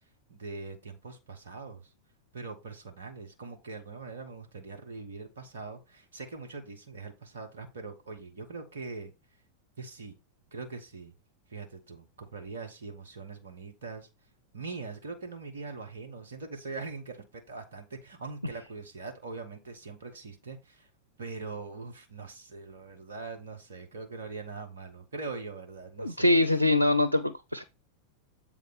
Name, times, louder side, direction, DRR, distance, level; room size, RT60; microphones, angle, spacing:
voice 1, 0.3-1.9 2.3-9.1 9.8-10.2 10.5-11.1 11.5-14.1 14.5-20.9 21.2-26.3, right 4 dB, 65° right, 1.4 m, -42 dB
voice 2, 26.0-27.6, left 2 dB, 85° left, 0.5 m, -24 dB
8.1 x 3.6 x 5.0 m
figure-of-eight pair, 90°, 0 cm